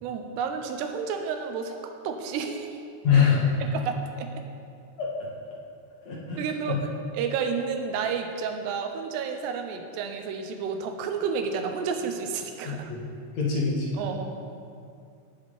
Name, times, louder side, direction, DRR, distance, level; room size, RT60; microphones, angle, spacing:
voice 1, 0.0-2.8 3.7-4.3 6.4-6.8 7.1-12.9 14.0-14.3, right 6 dB, 80° right, 5 dB, 3.0 m, -31 dB
voice 2, 3.0-3.6 5.0-5.1 6.0-6.4 6.7-6.8 12.6-13.0 13.3-14.0, left 6 dB, 50° left, -4 dB, 2.3 m, -24 dB
17.5 x 7.6 x 4.1 m, 2.5 s
omnidirectional pair, 4.8 m